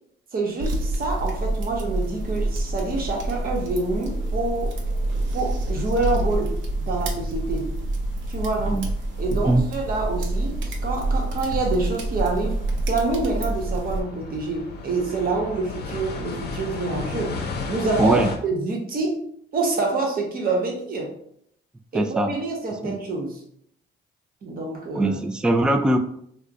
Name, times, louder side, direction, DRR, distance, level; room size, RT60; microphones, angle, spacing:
voice 1, 0.3-4.8 5.3-6.6 6.9-7.7 8.3-8.8 9.2-12.6 12.9-17.4 17.7-19.2 19.5-21.1 21.9-23.4 24.4-25.2, right 3 dB, 50° right, 0 dB, 1.0 m, -27 dB
sound 1, 0.6-14.0, right 2 dB, 70° right, 0.7 m, -27 dB
sound 2, 1.3-18.4, left 4 dB, 55° left, 0.7 m, -37 dB
voice 2, 9.3-9.7 18.0-18.3 21.9-22.3 22.8-22.9 24.9-26.0, right 1 dB, 5° right, 6 dB, 0.3 m, -21 dB
2.4 x 2.2 x 4.0 m, 0.67 s
cardioid pair, 90°, 20 cm